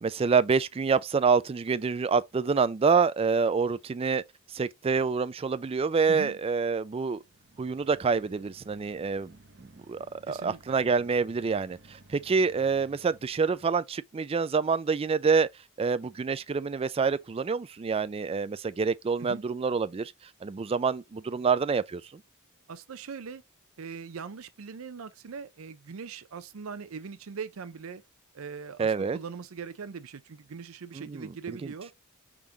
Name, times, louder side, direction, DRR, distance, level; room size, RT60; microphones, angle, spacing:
voice 1, 0.0-4.2 4.5-7.2 7.6-9.3 9.9-15.5 15.8-20.1 20.4-22.0 28.8-29.2 30.9-31.7, right 5 dB, 25° right, 0.3 m, -27 dB
voice 2, 6.1-6.4 10.3-10.8 19.2-19.4 22.7-23.4 23.8-28.0 28.3-31.9, right 5 dB, 80° right, 0.5 m, -41 dB
sound 1, 7.1-13.7, right 2 dB, 55° right, 0.9 m, -57 dB
5.0 x 3.6 x 2.8 m
head